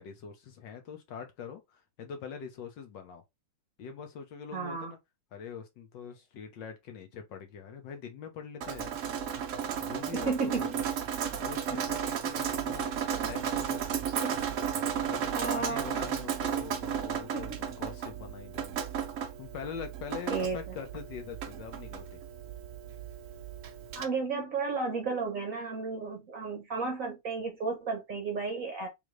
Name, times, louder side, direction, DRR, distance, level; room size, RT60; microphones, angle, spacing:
voice 1, 0.0-3.2 3.8-5.0 5.3-8.9 9.8-10.3 10.6-10.8 11.4-14.1 15.1-18.7 19.4-22.2, left 7 dB, 65° left, 1.5 m, -43 dB
voice 2, 4.5-4.9 10.1-10.8 11.7-11.8 14.2-14.3 15.3-16.0 17.3-17.5 20.3-20.6 23.9-28.9, right 4 dB, 55° right, 1.0 m, -33 dB
Drip, 8.6-24.0, right 8 dB, 80° right, 0.7 m, -34 dB
3.6 x 3.5 x 3.1 m
omnidirectional pair, 2.2 m